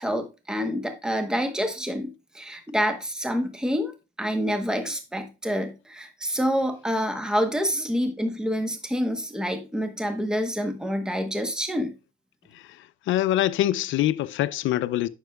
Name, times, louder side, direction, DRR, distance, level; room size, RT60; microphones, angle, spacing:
voice 1, 0.0-3.9 4.2-11.9, equal, 5° right, 1.0 m, -27 dB
voice 2, 13.1-15.1, left 13 dB, 80° left, 0.5 m, -24 dB
9.3 x 6.7 x 2.3 m
cardioid pair, 90°, 20 cm